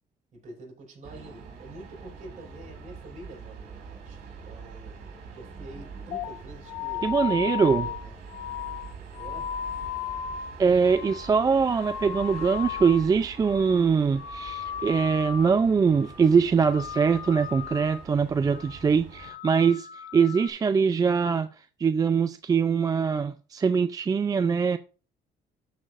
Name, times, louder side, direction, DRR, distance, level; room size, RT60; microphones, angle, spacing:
voice 1, 0.3-5.0 5.3-8.1 9.1-9.5, right 2 dB, 45° right, 5.2 m, -46 dB
sound 1, 1.0-19.3, right 5 dB, 70° right, 3.0 m, -44 dB
sound 2, 6.1-13.1 13.3-13.9 14.1-15.6 15.9-16.3 16.6-18.1 18.4-18.8 19.1-20.5, left 9 dB, 70° left, 1.2 m, -36 dB
voice 2, 7.0-7.9 10.6-19.9 20.1-21.5 21.8-24.8, right 5 dB, 20° right, 0.3 m, -23 dB
12.5 x 6.3 x 2.5 m
cardioid pair, 110°, 17 cm